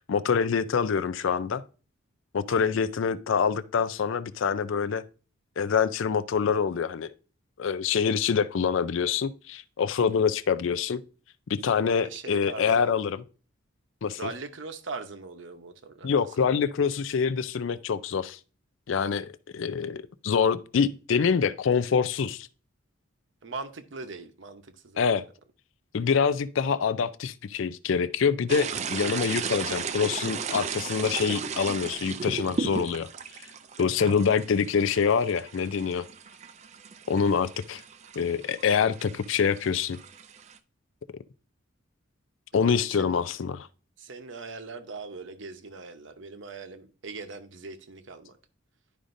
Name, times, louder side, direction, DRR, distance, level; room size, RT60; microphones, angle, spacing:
voice 1, 0.0-1.6 2.3-5.0 5.6-7.1 7.6-11.0 11.6-13.2 14.0-14.2 16.0-18.4 18.9-22.5 25.0-25.2 25.9-33.1 33.8-36.1 37.1-37.8 38.2-40.0 42.5-43.7, left 6 dB, 65° left, 0.4 m, -25 dB
voice 2, 2.5-2.9 11.9-12.9 14.2-16.5 23.4-25.2 42.6-43.2 44.0-48.4, right 4 dB, 60° right, 0.8 m, -41 dB
sound 1, 28.5-40.6, right 5 dB, 35° right, 0.4 m, -36 dB
11.0 x 5.0 x 2.6 m
head